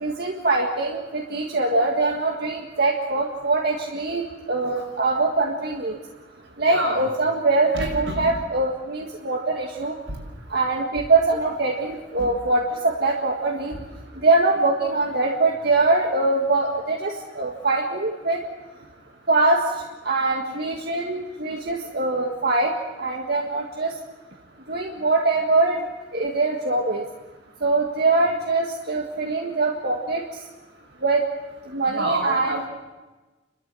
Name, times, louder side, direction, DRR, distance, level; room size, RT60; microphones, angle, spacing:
voice 1, 0.0-4.2 4.5-5.9 6.6-9.9 10.5-13.7 14.2-18.4 19.3-19.6 20.1-22.7 23.0-23.9 24.7-25.8 26.1-27.0 27.6-30.2 31.0-31.2 31.7-32.6, right 3 dB, 55° right, 0 dB, 1.8 m, -23 dB
voice 2, 6.7-7.0 7.7-8.3 10.1-10.2 12.2-12.3 21.8-21.9 31.9-32.7, right 1 dB, 85° right, 0 dB, 5.6 m, -28 dB
30.0 x 13.0 x 7.7 m, 1.2 s
head